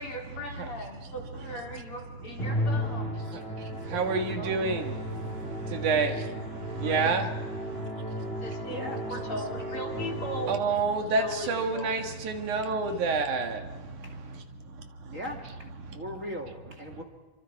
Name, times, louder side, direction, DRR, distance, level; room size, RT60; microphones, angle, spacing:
voice 1, 0.0-3.4 8.4-10.6 11.0-11.9, equal, 45° left, 4.8 m, -38 dB
Musical instrument, 2.4-10.9, equal, 20° left, 3.9 m, -34 dB
voice 2, 2.4-7.3 7.5-7.9 8.2-8.5 10.5-15.2 15.8-16.0, right 4 dB, 75° right, 3.3 m, -30 dB
voice 3, 3.9-4.7 6.7-7.2 8.7-9.0 14.0-14.2 15.1-15.7 15.9-17.0, equal, 25° right, 2.5 m, -39 dB
29.5 x 25.0 x 4.7 m
omnidirectional pair, 3.5 m